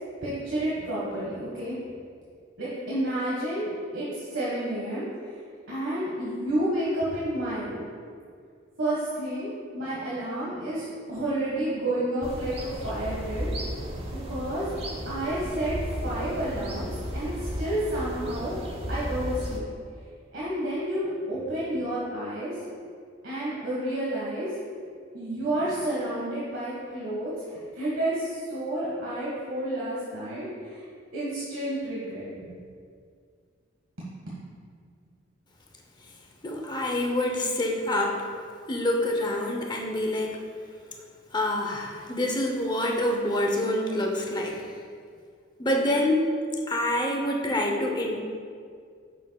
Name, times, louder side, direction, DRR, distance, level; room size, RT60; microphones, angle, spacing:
voice 1, 0.2-1.8 2.6-5.0 5.7-7.9 8.8-9.5 9.7-13.5 14.3-14.7 15.0-15.7 16.0-18.6 18.9-19.7 20.3-22.5 23.2-24.5 25.1-30.9 31.1-32.5 34.0-34.3, right 1 dB, 70° right, -8 dB, 1.7 m, -30 dB
sound 1, 12.2-19.6, equal, 30° right, 0.9 m, -34 dB
voice 2, 36.4-38.3 38.7-40.4 41.3-44.7 45.6-46.2 46.7-48.2, left 1 dB, 20° left, 1 dB, 0.8 m, -26 dB
9.2 x 7.2 x 2.4 m, 2.2 s
head